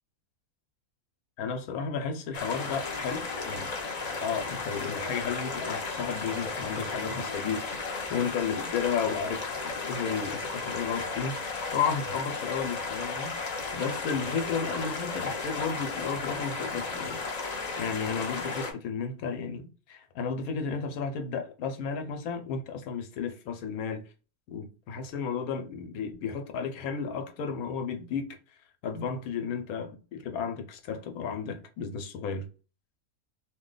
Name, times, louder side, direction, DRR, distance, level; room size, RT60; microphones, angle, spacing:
voice 1, 1.4-3.7 4.2-17.2 17.7-24.0 24.5-28.4 28.8-32.5, left 6 dB, 75° left, 1.1 m, -33 dB
sound 1, 2.3-18.7, left 4 dB, 45° left, 0.5 m, -34 dB
2.8 x 2.2 x 3.8 m
omnidirectional pair, 1.5 m